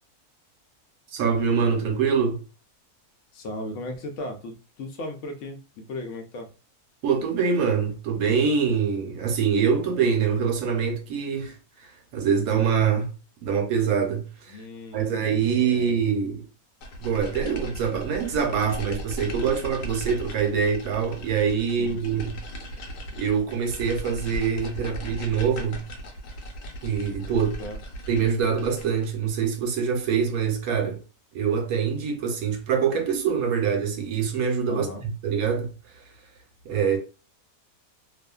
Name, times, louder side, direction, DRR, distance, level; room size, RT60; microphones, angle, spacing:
voice 1, 1.1-2.4 7.0-11.6 12.1-13.1 13.4-14.6 14.9-16.4 17.0-22.4 23.2-25.8 26.8-27.5 28.1-31.0 31.3-34.9 35.2-35.7 36.6-37.0, right 6 dB, 75° right, 1.0 m, -24 dB
voice 2, 3.3-6.5 14.5-16.0 21.7-22.3 27.2-27.8 34.7-35.1, left 1 dB, 65° left, 0.8 m, -37 dB
sound 1, 16.8-29.2, equal, 85° left, 1.2 m, -37 dB
2.5 x 2.4 x 2.2 m
omnidirectional pair, 1.6 m